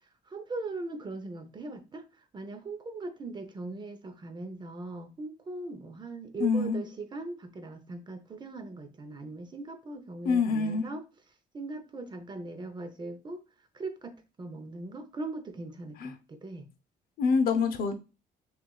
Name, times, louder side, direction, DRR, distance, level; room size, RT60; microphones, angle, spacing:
voice 1, 0.3-11.0 11.5-13.4 13.7-16.7, right 2 dB, 25° right, 8 dB, 0.6 m, -40 dB
voice 2, 6.4-6.8 10.2-10.8 16.0-16.1 17.2-17.9, left 5 dB, 60° left, 8 dB, 0.7 m, -26 dB
5.9 x 2.5 x 2.3 m, 0.30 s
cardioid pair, 110°, 17 cm